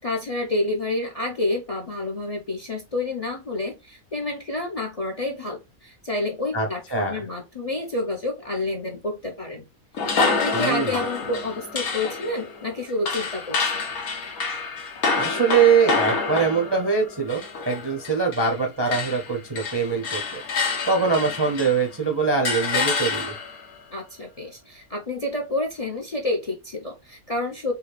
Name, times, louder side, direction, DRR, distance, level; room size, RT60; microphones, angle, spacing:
voice 1, 0.0-9.6 10.0-13.8 23.9-27.8, left 2 dB, 40° left, 0.5 m, -29 dB
voice 2, 6.5-7.2 10.5-10.9 15.2-20.4 20.9-23.3, right 5 dB, 30° right, 0.4 m, -23 dB
sound 1, 9.9-18.6 18.9-21.9 22.4-23.6, left 4 dB, 80° left, 1.4 m, -27 dB
4.8 x 2.3 x 3.2 m
omnidirectional pair, 1.5 m